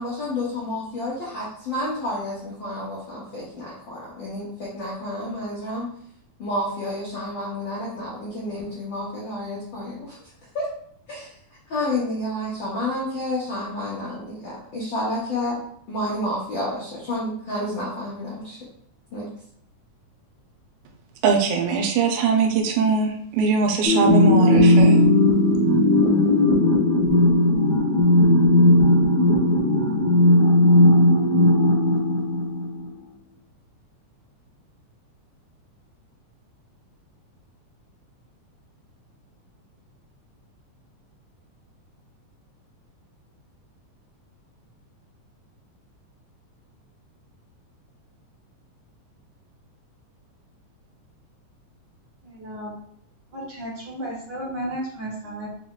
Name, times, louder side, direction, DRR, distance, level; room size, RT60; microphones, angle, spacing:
voice 1, 0.0-5.9 6.4-10.2 10.5-10.7 11.1-11.3 11.7-15.6 15.9-18.6 19.1-19.3, left 1 dB, 85° left, 1.0 m, -30 dB
voice 2, 21.2-25.0, right 5 dB, 85° right, 2.1 m, -21 dB
sound 1, 23.8-32.9, left 1 dB, 55° left, 1.1 m, -17 dB
voice 3, 52.2-52.8 53.3-55.5, right 1 dB, 45° right, 1.6 m, -33 dB
4.9 x 2.3 x 3.6 m
omnidirectional pair, 3.5 m